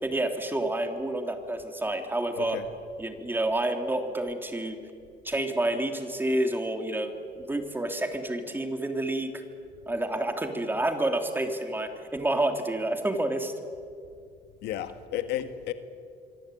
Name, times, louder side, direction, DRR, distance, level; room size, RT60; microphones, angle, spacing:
voice 1, 0.0-2.6 3.0-4.8 5.2-9.4 9.9-13.5, right 1 dB, 10° right, 5 dB, 3.2 m, -29 dB
voice 2, 14.6-15.7, left 11 dB, 80° left, 9 dB, 1.8 m, -32 dB
25.0 x 24.5 x 9.3 m, 2.3 s
cardioid pair, 110°, 17 cm